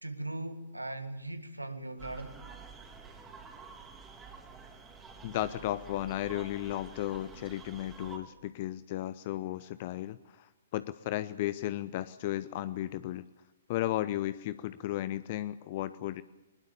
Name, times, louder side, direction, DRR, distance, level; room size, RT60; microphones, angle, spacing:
voice 1, 0.0-2.4, right 2 dB, 90° right, 1.8 m, -39 dB
sound 1, 2.0-8.2, right 5 dB, 15° right, 3.1 m, -49 dB
voice 2, 5.2-13.2 13.7-16.2, left 14 dB, 40° left, 0.7 m, -34 dB
21.0 x 20.5 x 7.0 m
figure-of-eight pair, 120°, 0 cm